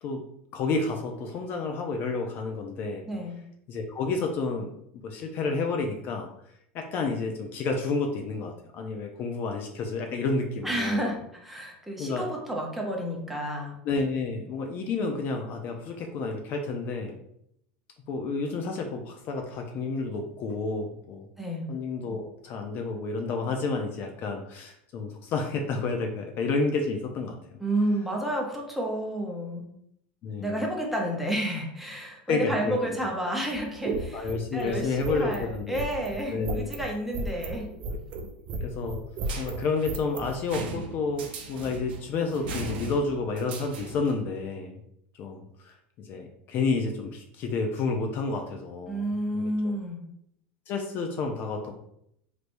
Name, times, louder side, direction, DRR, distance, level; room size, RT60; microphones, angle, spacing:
voice 1, 0.5-3.1 3.7-4.7 5.0-6.3 6.7-11.2 12.0-12.2 13.8-17.2 18.1-21.3 21.7-27.6 30.2-30.6 32.3-33.0 34.1-35.8 36.3-36.7 38.6-39.0 39.4-44.8 45.1-49.1 49.3-49.8 50.7-51.7, left 4 dB, 40° left, 3 dB, 0.4 m, -30 dB
voice 2, 3.1-3.4 10.6-13.8 21.4-21.7 27.6-29.7 30.4-37.7 48.9-50.0, right 1 dB, 5° right, 0 dB, 0.7 m, -30 dB
sound 1, 33.5-40.4, right 2 dB, 40° right, 0.4 m, -34 dB
sound 2, 39.2-44.2, right 3 dB, 85° right, 0.6 m, -39 dB
3.2 x 3.0 x 2.6 m, 0.74 s
supercardioid pair, 135°, 5 cm